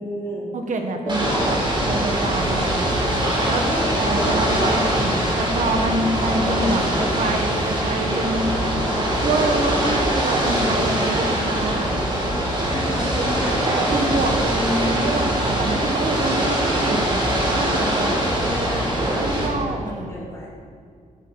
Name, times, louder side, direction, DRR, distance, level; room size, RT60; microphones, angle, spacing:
voice 1, 0.0-0.5 1.0-2.1 3.4-5.4 12.2-13.5 18.1-20.5, left 1 dB, 20° left, -7 dB, 4.3 m, -32 dB
voice 2, 0.5-1.6 1.9-2.7 3.4-3.6 4.0-8.5 9.2-12.0 13.2-13.3 13.9-17.0 17.5-18.1 19.2-20.1, right 2 dB, 60° right, 4 dB, 1.6 m, -26 dB
Ocean / Boat Water vehicle, 1.1-19.5, right 1 dB, 35° right, 4.2 m, -22 dB
16.5 x 11.0 x 4.9 m, 2.3 s
wide cardioid pair, 170°, 15 cm